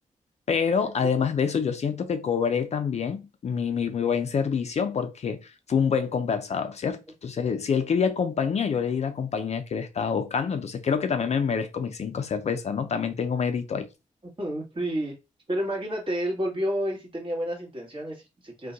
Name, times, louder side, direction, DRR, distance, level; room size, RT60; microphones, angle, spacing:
voice 1, 0.5-13.9, left 6 dB, 50° left, 0.4 m, -26 dB
voice 2, 14.4-15.1 15.5-18.7, equal, 35° right, 1.4 m, -30 dB
2.6 x 2.2 x 3.8 m
wide cardioid pair, 110°, 14 cm